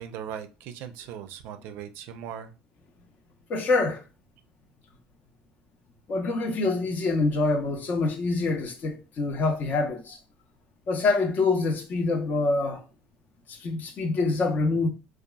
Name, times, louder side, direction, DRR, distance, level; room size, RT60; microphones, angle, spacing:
voice 1, 0.0-2.5, right 9 dB, 70° right, 0.4 m, -39 dB
voice 2, 3.5-4.0 6.1-10.2 10.9-12.8 13.5-14.9, left 3 dB, 50° left, 0.6 m, -25 dB
2.7 x 2.3 x 2.2 m
supercardioid pair, 80°, 4 cm